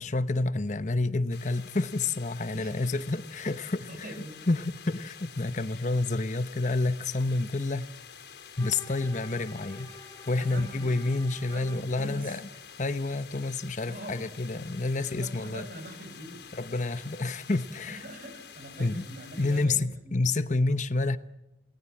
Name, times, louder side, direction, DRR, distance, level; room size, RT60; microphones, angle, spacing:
voice 1, 0.0-4.1 4.5-7.9 8.6-9.9 10.3-12.4 12.8-15.6 16.5-18.0 18.8-19.0 19.4-21.2, left 2 dB, 45° left, 0.9 m, -29 dB
sound 1, 1.3-19.7, left 7 dB, 85° left, 3.7 m, -48 dB
voice 2, 3.9-4.4 10.3-11.0 11.5-12.4 13.9-14.2 15.1-16.5 17.9-20.2, right 1 dB, 55° right, 7.5 m, -43 dB
Bowed string instrument, 8.6-12.0, left 2 dB, 20° left, 1.7 m, -49 dB
29.0 x 20.0 x 8.7 m
head